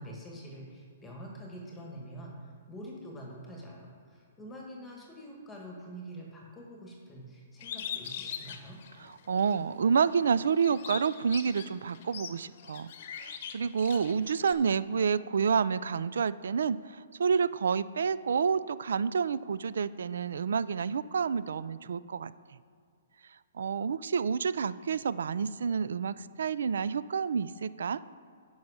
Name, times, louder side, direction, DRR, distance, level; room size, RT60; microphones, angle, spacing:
voice 1, 0.0-8.8, equal, 10° left, -2 dB, 1.6 m, -45 dB
Bird, 7.6-9.6 10.0-14.5, left 8 dB, 50° left, 0.8 m, -41 dB
voice 2, 9.0-12.9 13.2-22.6 23.5-28.0, right 6 dB, 80° right, 17 dB, 0.3 m, -29 dB
10.5 x 5.5 x 4.9 m, 2.3 s
hypercardioid pair, 155°, 0 cm